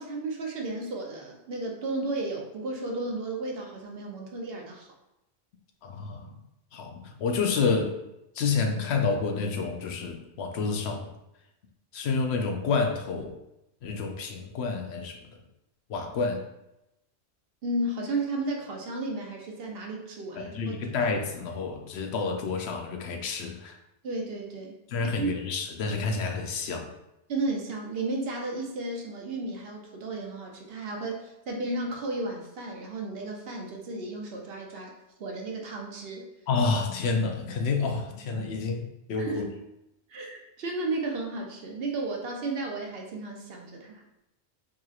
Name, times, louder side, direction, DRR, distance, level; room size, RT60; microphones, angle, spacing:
voice 1, 0.0-4.9 17.6-20.8 24.0-24.8 25.0-25.3 27.3-34.9 35.2-36.3 39.2-39.5 40.1-44.0, right 2 dB, 65° right, 1 dB, 0.9 m, -33 dB
voice 2, 5.8-6.4 6.7-8.0 8.3-11.1 11.9-13.3 13.8-15.2 15.9-16.4 20.3-23.8 24.9-26.9 36.5-39.5, left 4 dB, 75° left, 3 dB, 0.8 m, -29 dB
4.6 x 3.0 x 2.4 m, 0.88 s
omnidirectional pair, 1.1 m